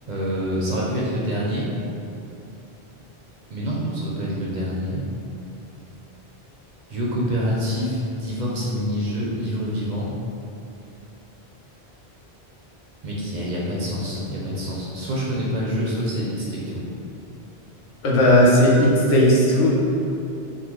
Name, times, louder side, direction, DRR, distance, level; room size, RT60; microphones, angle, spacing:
voice 1, 0.1-1.7 3.5-5.1 6.9-10.1 13.0-16.8, equal, 55° right, -6 dB, 0.6 m, -26 dB
voice 2, 18.0-19.8, left 1 dB, 90° left, -4 dB, 0.9 m, -16 dB
3.7 x 2.0 x 3.0 m, 2.7 s
omnidirectional pair, 1.1 m